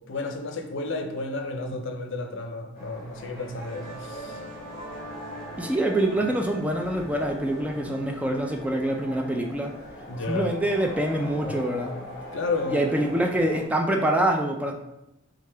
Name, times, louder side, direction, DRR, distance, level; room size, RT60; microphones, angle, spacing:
voice 1, 0.1-4.4 10.1-10.5 12.3-12.8, left 3 dB, 65° left, 5 dB, 0.5 m, -31 dB
sound 1, 2.7-13.7, equal, 45° left, 1.0 m, -41 dB
sound 2, 3.3-10.7, right 1 dB, 65° right, 1.5 m, -44 dB
voice 2, 5.6-9.7 10.3-12.1 12.7-14.7, right 1 dB, 5° right, 2 dB, 0.3 m, -25 dB
3.5 x 3.5 x 3.3 m, 0.92 s
head